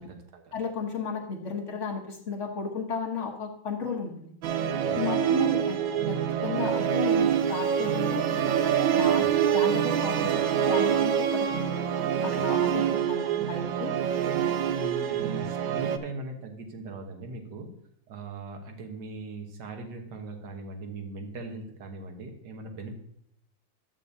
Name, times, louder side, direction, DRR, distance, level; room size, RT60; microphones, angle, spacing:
voice 1, 0.0-0.5 4.9-5.3 9.2-9.4 14.2-17.8 18.1-22.9, right 2 dB, 65° right, 4 dB, 1.8 m, -40 dB
voice 2, 0.5-4.3 4.9-5.8 6.1-8.3 8.9-11.5 12.2-14.0, left 5 dB, 45° left, 0 dB, 1.3 m, -34 dB
Musical instrument, 4.4-16.0, right 9 dB, 80° right, 1.4 m, -26 dB
12.0 x 8.3 x 2.7 m, 0.71 s
omnidirectional pair, 2.1 m